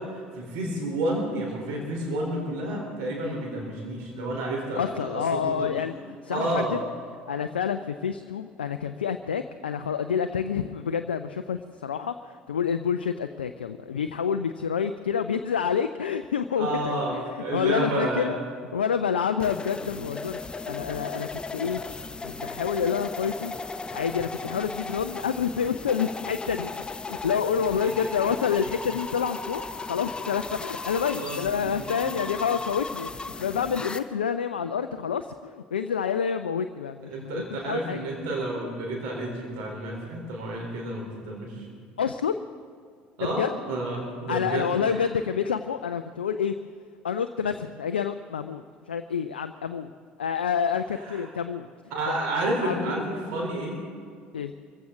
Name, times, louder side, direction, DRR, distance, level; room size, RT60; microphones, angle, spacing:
voice 1, 0.0-5.7 6.3-6.7 16.6-18.3 31.1-31.7 32.0-32.2 37.1-41.7 43.2-45.0 51.0-51.2 51.9-53.8, right 1 dB, 60° right, -1 dB, 3.6 m, -30 dB
voice 2, 4.8-6.8 7.3-18.3 18.7-21.8 22.2-23.5 23.9-26.7 27.1-33.1 33.4-38.0 42.0-42.4 43.2-43.5 44.3-46.5 47.0-49.9 50.2-51.7 52.6-53.0 54.3-54.5, left 7 dB, 75° left, 9 dB, 0.5 m, -28 dB
sound 1, 19.4-34.0, left 3 dB, 15° left, 0.9 m, -36 dB
25.0 x 15.5 x 3.7 m, 2.1 s
figure-of-eight pair, 60°, 5 cm